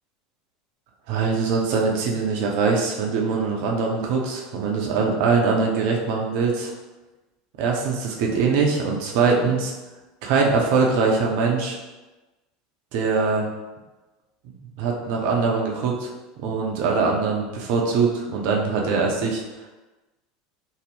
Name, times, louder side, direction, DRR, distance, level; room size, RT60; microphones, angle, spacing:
voice 1, 1.1-6.7 7.6-9.7 10.2-11.8 12.9-13.5 14.6-16.1 16.4-19.4, right 4 dB, 60° right, -1 dB, 0.5 m, -22 dB
2.6 x 2.0 x 3.3 m, 1.1 s
figure-of-eight pair, 75°, 0 cm